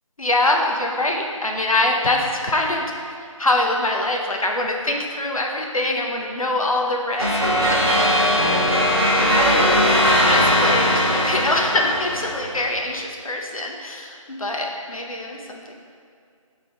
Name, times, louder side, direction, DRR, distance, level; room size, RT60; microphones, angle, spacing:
voice 1, 0.2-2.8 3.4-7.3 7.7-8.4 9.3-15.7, left 2 dB, 80° left, 1 dB, 1.0 m, -24 dB
sound 1, 7.2-12.7, equal, 45° right, 1.3 m, -19 dB
6.9 x 4.4 x 3.8 m, 2.2 s
figure-of-eight pair, 160°, 18 cm